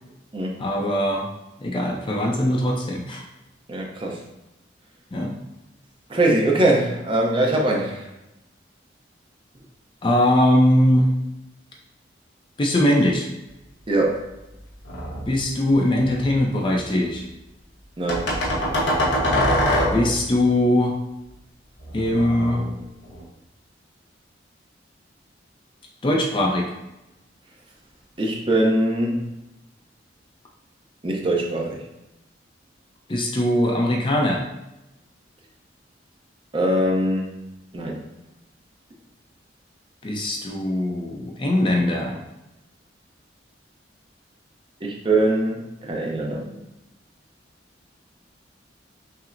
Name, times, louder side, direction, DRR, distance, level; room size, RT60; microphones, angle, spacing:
voice 1, 0.6-1.3 1.6-3.2 5.1-5.3 10.0-11.1 12.6-13.3 15.3-17.2 19.9-20.9 21.9-22.6 26.0-26.7 33.1-34.4 40.0-42.2, left 1 dB, 25° left, 0 dB, 0.4 m, -21 dB
voice 2, 3.7-4.2 6.1-8.1 13.9-14.2 18.0-18.3 28.2-29.3 31.0-31.8 36.5-37.3 37.7-38.0 44.8-46.6, right 1 dB, 30° right, -1 dB, 0.6 m, -22 dB
sound 1, 14.9-15.4 16.0-16.9 18.1-20.3 21.8-23.2, equal, 80° left, 0.9 m, -24 dB
5.6 x 2.0 x 2.5 m, 0.94 s
head